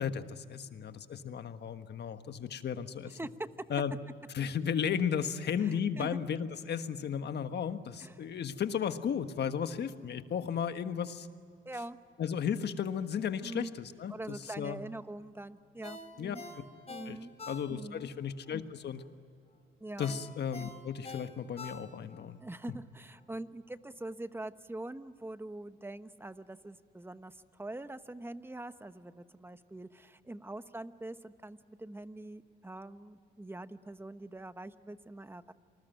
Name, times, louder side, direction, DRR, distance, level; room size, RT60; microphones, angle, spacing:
voice 1, 0.0-3.2 3.7-3.9 4.3-11.3 12.2-14.8 16.2-16.4 17.1-17.2 17.5-19.0 20.0-22.4, left 7 dB, 60° left, 9 dB, 1.5 m, -34 dB
voice 2, 3.1-3.5 5.6-6.2 8.0-8.2 11.6-12.0 13.4-13.8 14.1-16.4 16.9-17.3 17.7-18.0 19.8-20.2 22.4-35.5, right 2 dB, 10° right, 12 dB, 1.0 m, -44 dB
Ringtone, 15.8-18.1 18.5-18.6 20.0-22.3 22.6-22.7, left 3 dB, 30° left, 3.8 m, -46 dB
27.5 x 20.0 x 9.3 m, 2.3 s
cardioid pair, 90°, 20 cm